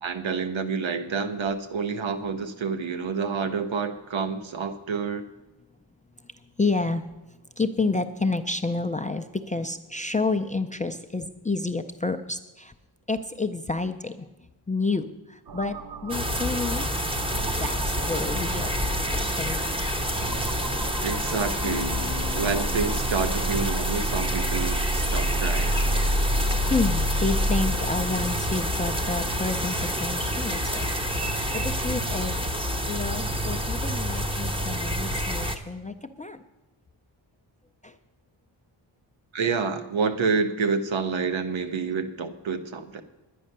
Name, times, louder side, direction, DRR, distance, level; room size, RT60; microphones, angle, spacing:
voice 1, 0.0-5.2 21.0-21.9 22.3-25.7 39.3-43.0, right 5 dB, 75° right, 9 dB, 1.0 m, -28 dB
voice 2, 6.6-7.0 7.6-12.7 13.1-14.1 14.7-15.1 15.5-15.8 16.0-16.8 17.6-19.8 24.7-24.9 25.6-25.7 26.6-30.9 31.3-32.4 32.9-36.4 37.8-37.9, left 3 dB, 20° left, 9 dB, 0.4 m, -29 dB
sound 1, 15.5-27.7, right 1 dB, 50° right, 0.6 m, -30 dB
sound 2, 16.1-35.6, equal, 10° right, 0.7 m, -28 dB
Bass guitar, 21.6-25.4, left 7 dB, 50° left, 0.7 m, -39 dB
11.0 x 9.4 x 6.6 m, 1.1 s
wide cardioid pair, 165°, 47 cm